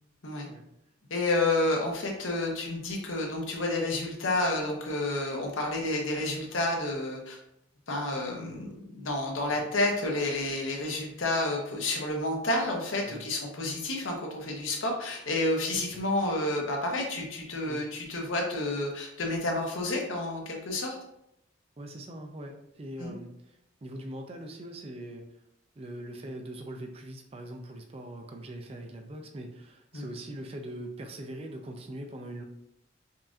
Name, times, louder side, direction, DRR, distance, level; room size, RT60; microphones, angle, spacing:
voice 1, 1.1-7.4 7.9-20.9 23.0-23.1 29.9-30.1, left 2 dB, 80° left, 0 dB, 0.9 m, -30 dB
voice 2, 21.8-25.2 25.8-32.4, right 1 dB, 30° right, 4 dB, 0.4 m, -42 dB
5.4 x 2.6 x 2.4 m, 0.81 s
head